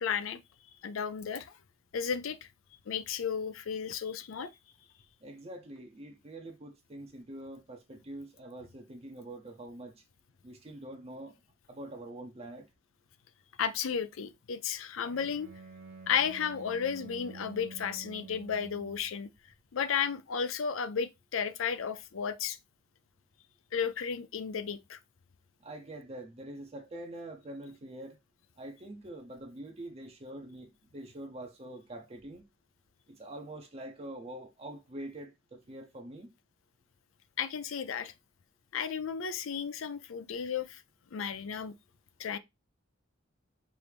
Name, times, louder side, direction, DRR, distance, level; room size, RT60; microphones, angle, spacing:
voice 1, 0.0-0.4 0.8-1.5 1.9-2.5 2.9-4.5 13.6-15.5 16.1-19.3 19.7-22.6 23.7-25.0 37.4-38.1 38.7-40.8 41.1-41.7 42.2-42.4, left 7 dB, 75° left, 0.5 m, -33 dB
voice 2, 5.2-10.0 10.4-11.3 11.7-12.7 25.6-28.2 28.6-32.4 33.1-36.3, right 1 dB, 30° right, 0.6 m, -45 dB
Bowed string instrument, 15.0-19.1, right 4 dB, 45° right, 1.1 m, -49 dB
4.7 x 2.6 x 3.3 m
head